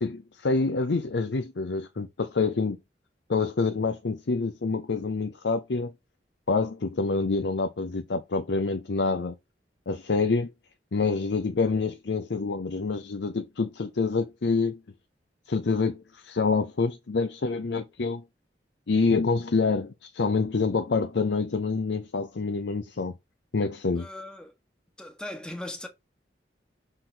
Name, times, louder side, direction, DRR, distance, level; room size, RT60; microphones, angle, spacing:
voice 1, 0.0-2.8 3.3-5.9 6.5-9.3 9.9-10.5 10.9-14.8 15.5-18.2 18.9-23.1 23.5-24.1, left 4 dB, 80° left, 0.6 m, -27 dB
voice 2, 24.0-24.5 25.0-25.9, left 1 dB, 5° left, 1.2 m, -38 dB
6.4 x 3.9 x 4.3 m
head